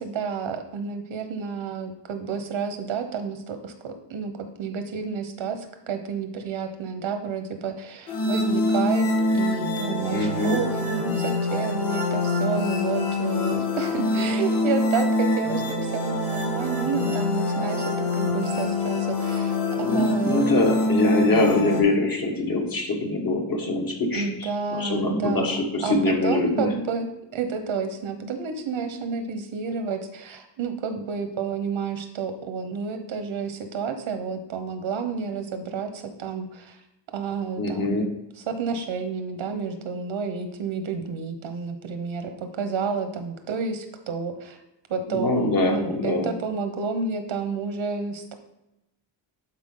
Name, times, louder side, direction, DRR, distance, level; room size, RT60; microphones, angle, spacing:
voice 1, 0.0-20.5 24.1-36.8 37.1-44.6 44.9-48.3, right 5 dB, 85° right, 7 dB, 1.2 m, -30 dB
sound 1, 8.1-21.8, left 2 dB, 90° left, 2.3 m, -25 dB
voice 2, 10.1-10.6 19.8-26.7 37.6-38.1 45.1-46.3, left 2 dB, 50° left, 1 dB, 1.8 m, -24 dB
11.5 x 4.8 x 3.9 m, 0.91 s
wide cardioid pair, 150°, 46 cm